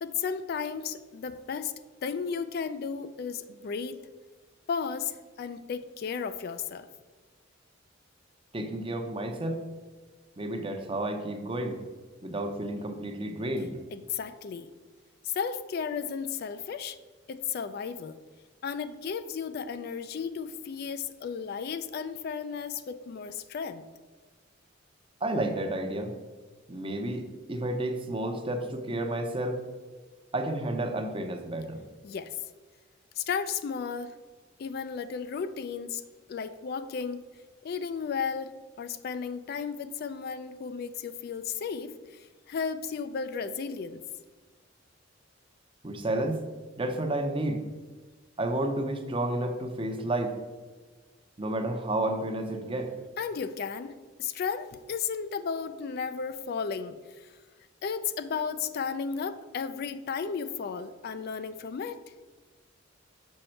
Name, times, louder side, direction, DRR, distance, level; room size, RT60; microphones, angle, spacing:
voice 1, 0.0-1.7 2.0-4.0 4.7-6.9 13.9-14.7 15.2-17.0 17.3-18.2 18.6-23.9 32.0-32.3 33.2-34.1 34.6-36.0 36.3-37.2 37.6-38.5 38.8-44.0 53.2-53.9 54.2-57.3 57.8-62.0, left 6 dB, 50° left, 11 dB, 0.3 m, -34 dB
voice 2, 8.5-9.6 10.4-11.8 12.2-13.7 25.2-26.1 26.7-29.6 30.3-31.8 45.8-46.4 46.8-47.6 48.4-50.4 51.4-52.9, right 1 dB, 25° right, 6 dB, 0.7 m, -31 dB
6.4 x 5.2 x 4.4 m, 1.4 s
head